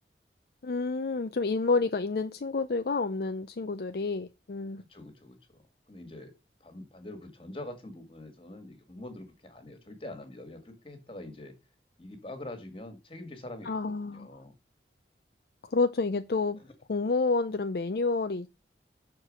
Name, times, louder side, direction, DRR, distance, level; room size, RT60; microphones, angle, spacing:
voice 1, 0.6-4.8 13.6-14.3 15.6-16.6 16.9-18.5, left 3 dB, 60° left, 0.5 m, -29 dB
voice 2, 4.8-6.3 6.6-11.5 12.0-14.5 16.6-16.7, left 1 dB, 30° left, 1.8 m, -45 dB
6.6 x 4.6 x 6.2 m
head